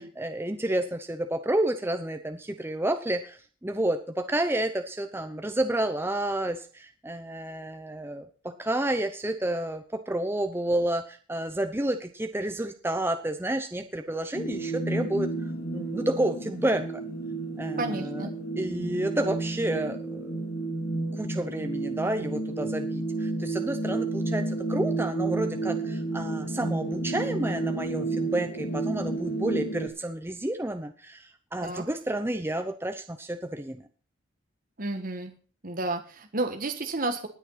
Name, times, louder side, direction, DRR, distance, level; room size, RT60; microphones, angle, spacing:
voice 1, 0.0-15.3 15.7-17.0 17.6-18.3 18.6-20.5 21.1-33.9, right 1 dB, 10° right, 7 dB, 0.7 m, -30 dB
sound 1, 14.3-29.9, right 2 dB, 55° left, 2.8 m, -31 dB
voice 2, 17.8-18.3 31.6-31.8 34.8-35.3 35.6-37.3, right 2 dB, 45° right, 5 dB, 1.5 m, -31 dB
19.5 x 6.6 x 5.6 m, 0.41 s
head